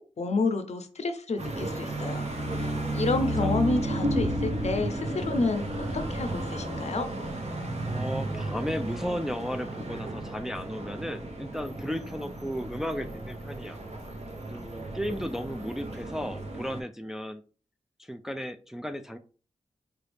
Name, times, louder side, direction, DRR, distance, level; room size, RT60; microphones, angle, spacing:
voice 1, 0.0-2.3 2.6-7.1, left 3 dB, 55° left, 8 dB, 0.6 m, -30 dB
sound 1, 1.4-16.8, right 1 dB, 55° right, 0.9 m, -33 dB
voice 2, 2.9-3.5 7.8-13.8 14.5-17.4 18.0-19.2, equal, 5° right, 7 dB, 0.4 m, -35 dB
4.7 x 2.6 x 3.4 m, 0.38 s
cardioid pair, 65°, 13 cm